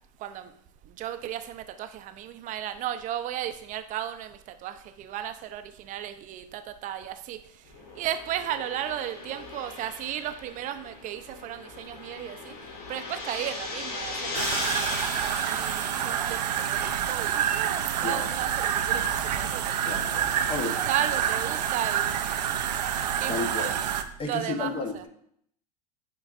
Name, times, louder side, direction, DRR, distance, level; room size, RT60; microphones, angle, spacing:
voice 1, 1.0-7.4 8.0-12.5 12.9-15.0 15.2-20.0 20.6-22.1 23.2-23.8 24.3-25.0, right 11 dB, 40° right, 10 dB, 0.6 m, -35 dB
sound 1, 7.7-17.2, left 3 dB, 70° left, 1.7 m, -38 dB
sound 2, 14.3-24.0, right 9 dB, 90° right, 0.5 m, -28 dB
voice 2, 19.8-20.8 23.3-23.8 24.2-25.1, left 3 dB, 25° left, 4 dB, 1.1 m, -33 dB
9.8 x 3.8 x 2.5 m, 0.68 s
hypercardioid pair, 105°, 21 cm